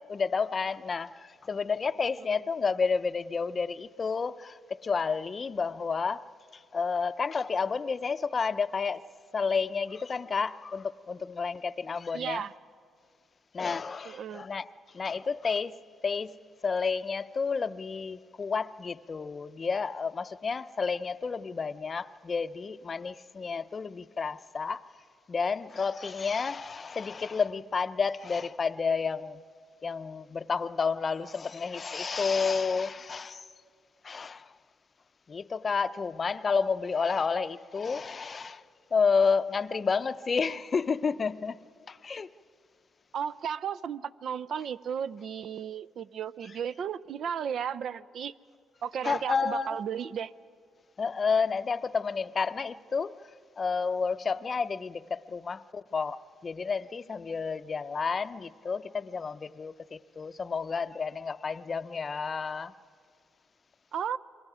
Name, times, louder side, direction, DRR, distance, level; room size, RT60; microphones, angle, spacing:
voice 1, 0.1-9.0 9.3-12.5 13.5-14.7 14.9-24.9 25.3-29.4 29.8-33.5 34.0-34.5 35.3-38.6 38.9-41.6 41.9-42.3 49.0-49.7 51.0-53.1 53.6-62.7, left 5 dB, 40° left, 0.6 m, -30 dB
voice 2, 12.1-12.5 14.1-14.5 43.1-48.3 48.8-50.3 63.9-64.2, right 8 dB, 65° right, 0.5 m, -34 dB
28.5 x 23.0 x 4.9 m
cardioid pair, 90°, 0 cm